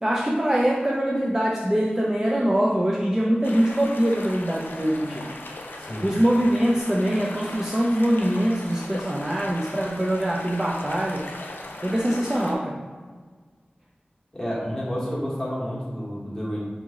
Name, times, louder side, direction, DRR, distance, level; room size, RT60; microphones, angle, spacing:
voice 1, 0.0-5.3 6.0-11.2 11.8-12.8, equal, 15° right, -3 dB, 0.3 m, -23 dB
sound 1, 3.4-12.6, left 2 dB, 80° left, 0.3 m, -38 dB
voice 2, 14.3-16.6, equal, 10° left, -7 dB, 1.3 m, -30 dB
3.0 x 2.6 x 3.6 m, 1.5 s
wide cardioid pair, 50°, 3 cm